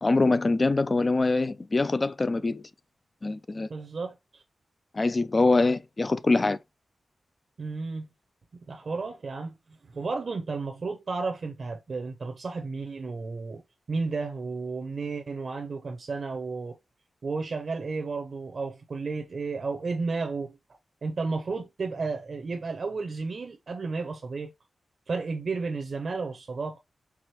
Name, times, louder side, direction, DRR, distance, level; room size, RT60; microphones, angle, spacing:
voice 1, 0.0-2.7 3.2-3.7 4.9-6.6, left 3 dB, 30° left, 0.3 m, -24 dB
voice 2, 3.7-4.4 7.6-8.1 8.7-9.6 9.9-13.6 13.9-16.8 17.2-20.6 21.0-24.5 25.1-26.8, right 4 dB, 50° right, 0.6 m, -32 dB
4.8 x 3.4 x 2.9 m
wide cardioid pair, 155°, 0 cm